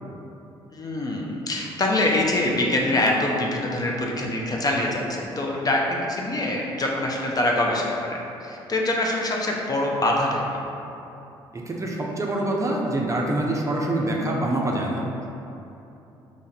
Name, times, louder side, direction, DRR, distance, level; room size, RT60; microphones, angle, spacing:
voice 1, 0.7-10.4, left 1 dB, 35° left, -1 dB, 0.6 m, -24 dB
voice 2, 11.5-15.0, right 1 dB, 25° right, -1 dB, 0.6 m, -25 dB
2.9 x 2.5 x 4.1 m, 3.0 s
hypercardioid pair, 55°, 11 cm